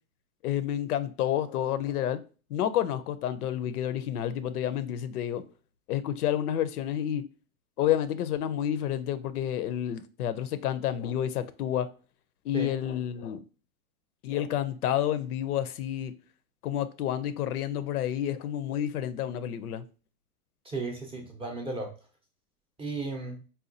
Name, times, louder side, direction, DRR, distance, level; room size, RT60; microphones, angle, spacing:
voice 1, 0.4-2.2 2.5-5.4 5.9-7.2 7.8-11.9 12.4-13.4 14.2-16.1 16.6-19.8, left 11 dB, 80° left, 0.5 m, -29 dB
voice 2, 20.6-21.9 22.8-23.4, right 3 dB, 15° right, 0.5 m, -34 dB
4.2 x 2.3 x 2.5 m
hypercardioid pair, 105°, 44 cm